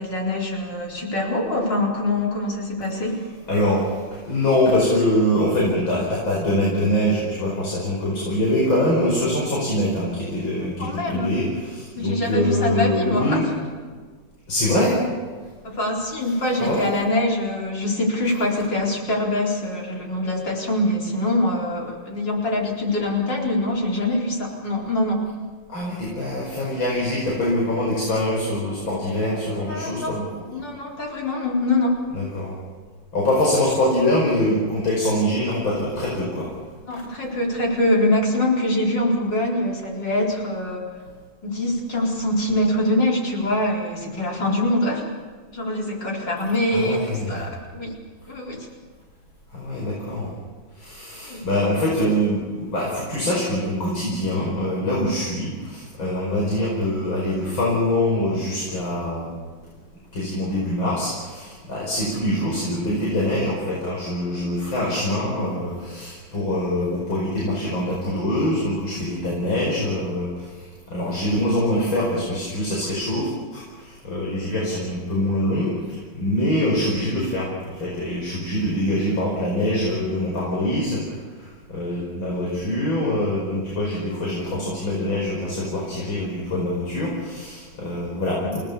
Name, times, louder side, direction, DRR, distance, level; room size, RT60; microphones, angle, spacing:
voice 1, 0.0-3.2 10.8-11.3 12.0-13.5 15.6-25.2 29.7-30.1 30.5-32.0 36.9-40.8 41.4-45.1 45.5-48.0 48.3-48.7 51.2-51.6 88.4-88.6, left 1 dB, 60° left, -2 dB, 5.0 m, -24 dB
voice 2, 3.5-13.4 14.5-15.0 16.6-16.8 25.7-30.3 32.1-32.5 33.1-36.5 37.0-37.1 46.7-47.5 49.5-50.3 50.7-59.3 60.1-88.6, left 1 dB, 80° left, -4 dB, 6.2 m, -24 dB
29.0 x 18.5 x 7.0 m, 1.5 s
omnidirectional pair, 2.2 m